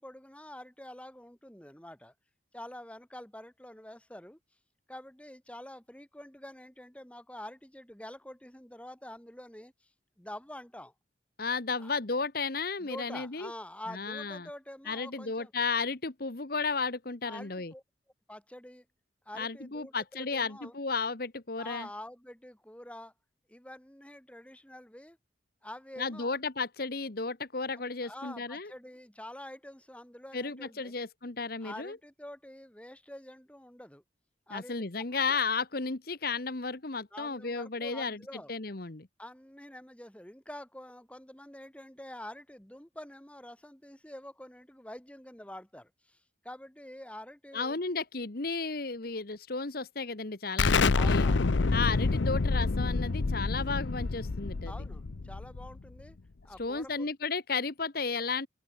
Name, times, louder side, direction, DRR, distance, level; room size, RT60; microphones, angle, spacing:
voice 1, 0.0-2.1 2.5-4.4 4.9-9.9 10.2-10.9 11.8-11.9 12.8-15.5 17.2-17.8 18.3-18.8 19.2-20.7 21.6-23.1 23.5-25.2 25.6-26.4 28.0-30.9 31.6-34.0 34.5-34.8 35.3-35.4 37.1-38.5 39.2-47.8 50.9-51.5 54.7-56.2 56.4-57.0, left 1 dB, 5° left, 1.4 m, -47 dB
voice 2, 11.4-13.5 13.9-14.5 14.9-17.7 19.4-21.9 26.0-28.7 30.3-32.0 34.5-38.2 38.5-39.1 47.5-51.3 51.7-54.7 56.6-58.5, left 4 dB, 50° left, 1.2 m, -33 dB
Explosion, 50.6-56.0, left 4 dB, 75° left, 0.7 m, -27 dB
open air
head